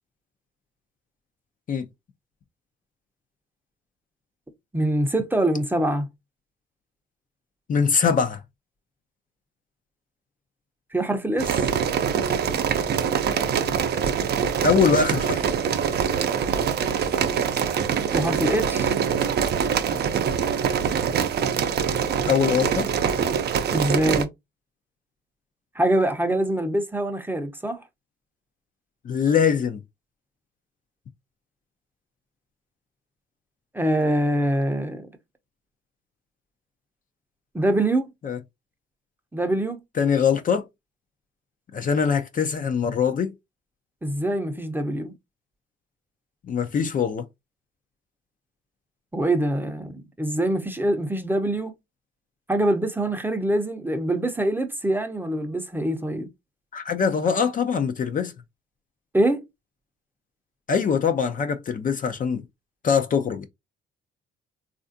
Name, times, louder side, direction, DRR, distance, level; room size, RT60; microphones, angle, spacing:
voice 1, 4.7-6.1 10.9-11.5 18.1-18.9 23.7-24.3 25.7-27.8 33.7-35.1 37.5-38.1 39.3-39.8 44.0-45.1 49.1-51.7 52.5-56.3 59.1-59.4, right 1 dB, 10° right, 0.6 m, -24 dB
voice 2, 7.7-8.4 14.6-15.5 22.3-22.9 29.0-29.8 38.2-38.4 40.0-40.6 41.7-43.3 46.4-47.2 56.7-58.3 60.7-62.4 62.8-63.5, left 6 dB, 45° left, 0.5 m, -22 dB
sound 1, 11.4-24.3, right 7 dB, 55° right, 0.5 m, -24 dB
3.3 x 2.5 x 2.6 m
cardioid pair, 90°, 20 cm